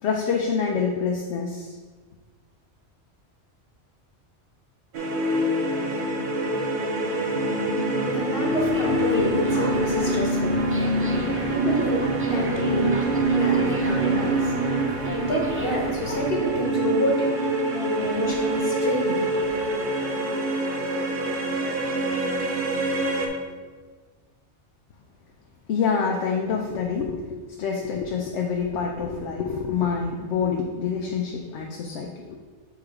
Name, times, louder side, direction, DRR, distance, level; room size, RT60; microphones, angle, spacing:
voice 1, 0.0-1.8 25.7-32.4, left 6 dB, 80° left, 1 dB, 0.9 m, -26 dB
sound 1, 4.9-23.3, right 1 dB, 50° right, 0.9 m, -25 dB
voice 2, 7.2-19.2, equal, 55° left, -1 dB, 1.2 m, -29 dB
sound 2, 8.6-16.4, right 1 dB, 20° right, 0.4 m, -36 dB
6.6 x 3.5 x 4.8 m, 1.4 s
omnidirectional pair, 1.2 m